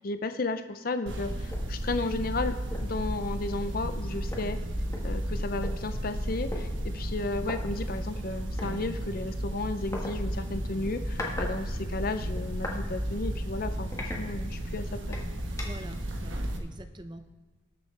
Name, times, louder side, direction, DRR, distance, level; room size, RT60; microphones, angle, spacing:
voice 1, 0.0-4.6 5.0-13.9 14.2-15.2, left 2 dB, 45° left, 9 dB, 0.5 m, -33 dB
sound 1, 1.1-16.6, equal, 70° right, 1.2 m, -33 dB
sound 2, 1.5-1.7 2.2-2.3 2.7-3.0 4.0-4.1 4.3-5.7 6.5-6.6 7.4-7.6 8.6-8.7 9.9-10.1 10.8-11.5 11.8-12.8 13.3-13.4 13.9-14.7 15.1-15.9, left 1 dB, 15° left, 1.4 m, -39 dB
voice 2, 15.6-17.4, right 1 dB, 20° right, 8 dB, 0.6 m, -45 dB
19.5 x 6.7 x 3.3 m, 1.3 s
head